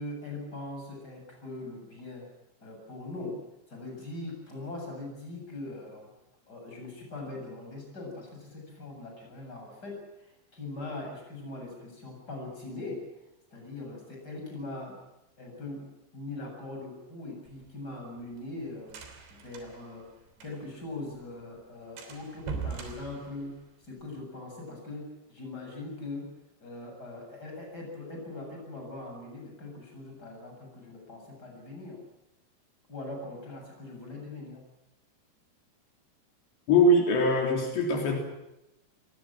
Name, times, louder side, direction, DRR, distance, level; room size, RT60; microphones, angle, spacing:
voice 1, 0.0-2.3 2.6-3.4 3.7-6.1 6.5-13.1 13.5-15.0 15.4-15.9 16.1-19.0 19.3-20.1 20.4-23.6 23.8-26.3 26.6-32.0 32.9-34.6, left 2 dB, 20° left, 1 dB, 8.0 m, -41 dB
sound 1, 17.5-20.9 21.2-21.3 21.5-21.7 22.0-24.0, right 5 dB, 80° right, 5.4 m, -41 dB
voice 2, 36.7-38.2, left 1 dB, 80° left, 1 dB, 5.7 m, -22 dB
29.5 x 19.5 x 7.6 m, 0.91 s
omnidirectional pair, 5.0 m